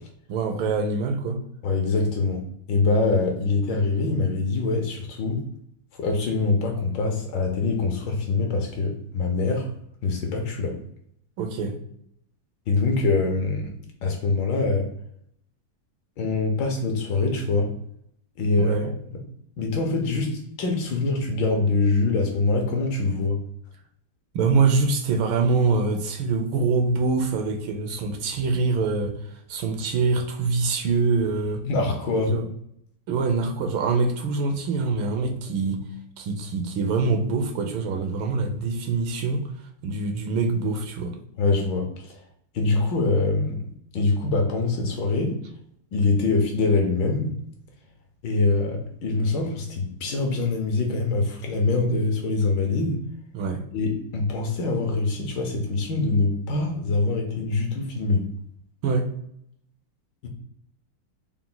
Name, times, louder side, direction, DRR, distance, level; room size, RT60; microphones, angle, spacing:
voice 1, 0.3-1.4 11.4-11.8 18.6-18.9 24.3-29.2 29.5-31.6 32.3-32.5 33.1-35.8 36.2-39.4 39.8-41.1 53.3-53.6 58.8-59.1, right 4 dB, 75° right, 4 dB, 1.3 m, -24 dB
voice 2, 1.6-2.4 2.7-5.4 6.0-9.7 10.0-10.7 12.7-13.7 14.0-14.9 16.2-17.7 18.4-18.8 19.6-23.4 31.7-32.3 41.4-42.2 42.5-43.6 43.9-45.3 45.9-47.3 48.2-53.0 53.7-58.2 60.2-60.3, left 3 dB, 70° left, 2 dB, 1.2 m, -24 dB
4.4 x 2.2 x 3.8 m, 0.70 s
omnidirectional pair, 2.4 m